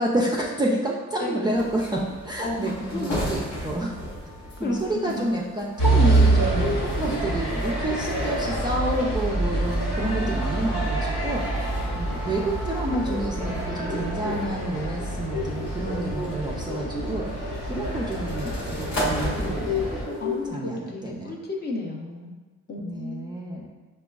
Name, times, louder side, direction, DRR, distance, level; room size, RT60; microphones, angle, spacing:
voice 1, 0.0-4.0 4.6-11.5 11.9-19.9 20.5-21.3 22.8-23.7, right 1 dB, 15° right, -3 dB, 0.3 m, -29 dB
voice 2, 1.2-1.7 2.4-3.3 4.6-5.4 9.9-10.9 20.2-22.3 22.7-23.4, left 2 dB, 35° left, 0 dB, 0.6 m, -33 dB
sound 1, 1.5-20.5, left 2 dB, 60° left, 1.1 m, -35 dB
sound 2, 5.8-20.0, right 2 dB, 90° left, 1.2 m, -26 dB
Wind instrument woodwind instrument, 10.3-14.6, left 1 dB, ahead, 0.8 m, -42 dB
4.8 x 2.3 x 2.3 m, 1.3 s
cardioid pair, 90°, 30 cm